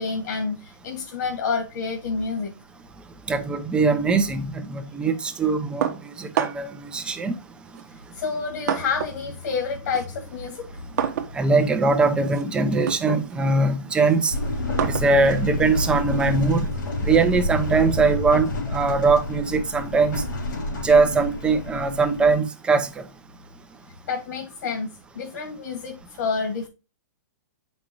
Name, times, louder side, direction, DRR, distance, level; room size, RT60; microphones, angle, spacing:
voice 1, 0.0-2.5 8.1-11.3 24.1-24.9 25.1-26.7, left 5 dB, 65° left, 2.1 m, -29 dB
voice 2, 3.3-7.3 11.3-14.3 14.8-16.7 17.0-20.2 20.8-23.0, right 4 dB, 10° right, 0.7 m, -21 dB
sound 1, 5.8-6.8 7.7-9.3 9.6-16.9, right 9 dB, 60° right, 0.9 m, -31 dB
sound 2, 14.3-22.4, left 2 dB, 85° left, 3.4 m, -28 dB
7.5 x 5.4 x 3.0 m
hypercardioid pair, 150°, 10 cm